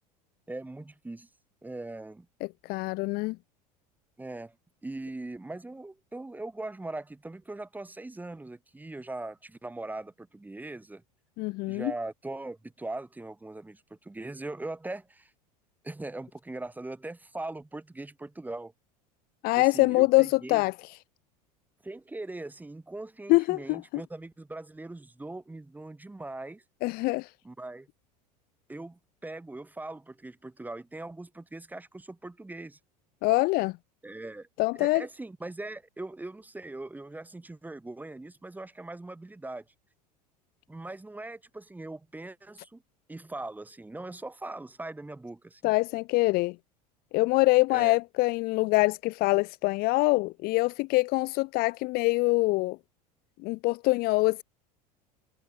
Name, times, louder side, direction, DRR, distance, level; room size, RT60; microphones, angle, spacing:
voice 1, 0.5-1.3 1.6-2.3 4.2-4.5 4.8-11.0 11.7-15.3 15.8-18.7 19.5-20.6 21.8-26.6 27.4-27.9 28.7-32.8 34.0-34.5 34.7-39.6 40.7-42.8 43.1-45.7 47.7-48.0, right 2 dB, 10° right, 1.2 m, -40 dB
voice 2, 2.7-3.4 11.4-11.9 19.4-20.7 23.3-23.8 26.8-27.3 33.2-33.7 34.6-35.0 45.6-46.6 47.1-52.8 53.4-54.4, left 23 dB, 45° left, 0.5 m, -24 dB
hypercardioid pair, 80°, 21 cm